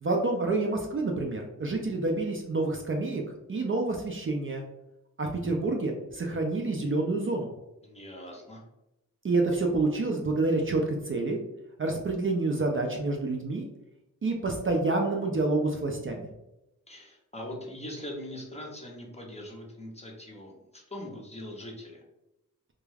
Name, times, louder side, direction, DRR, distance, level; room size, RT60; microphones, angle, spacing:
voice 1, 0.0-3.2 3.5-4.7 5.2-7.5 9.2-11.4 11.8-13.7 14.2-16.2, right 2 dB, 40° right, 1 dB, 0.4 m, -28 dB
voice 2, 7.8-8.6 16.9-22.0, left 1 dB, 20° left, -1 dB, 0.6 m, -41 dB
2.3 x 2.2 x 3.2 m, 0.90 s
wide cardioid pair, 100°, 33 cm